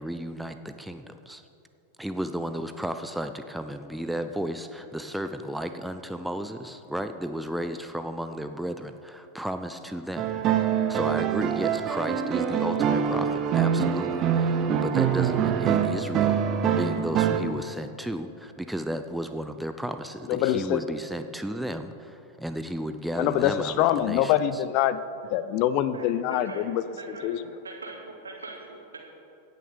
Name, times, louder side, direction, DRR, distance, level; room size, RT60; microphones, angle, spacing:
voice 1, 0.0-1.5 2.0-24.6, right 1 dB, 5° right, 8 dB, 0.5 m, -34 dB
sound 1, 10.2-17.4, right 8 dB, 35° right, 0.8 m, -24 dB
voice 2, 20.3-20.8 23.2-25.0 25.3-26.8 27.2-27.4, left 12 dB, 45° left, 14 dB, 0.5 m, -24 dB
voice 3, 25.9-29.0, right 3 dB, 75° right, 0 dB, 2.2 m, -42 dB
17.0 x 6.6 x 6.7 m, 2.6 s
figure-of-eight pair, 90°, 0 cm